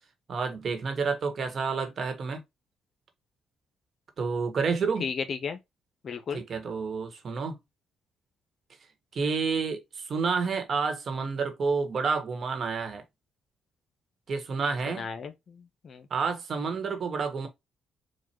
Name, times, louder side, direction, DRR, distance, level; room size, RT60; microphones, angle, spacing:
voice 1, 0.3-2.4 4.2-5.1 6.3-7.6 9.1-13.0 14.3-15.0 16.1-17.5, right 5 dB, 50° right, 1.3 m, -29 dB
voice 2, 5.0-5.6 6.0-6.4 15.0-16.1, left 6 dB, 55° left, 0.9 m, -34 dB
4.4 x 2.4 x 4.5 m
cardioid pair, 90°, 0 cm